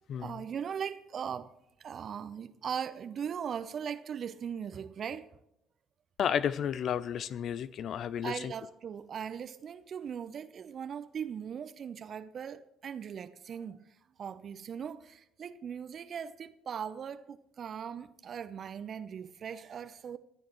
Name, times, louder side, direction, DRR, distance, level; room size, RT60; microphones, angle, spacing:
voice 1, 0.2-1.5 1.8-5.3 8.2-20.2, right 7 dB, 45° right, 0.8 m, -39 dB
voice 2, 6.2-8.5, left 8 dB, 55° left, 0.5 m, -32 dB
27.0 x 9.3 x 3.1 m
figure-of-eight pair, 50°, 0 cm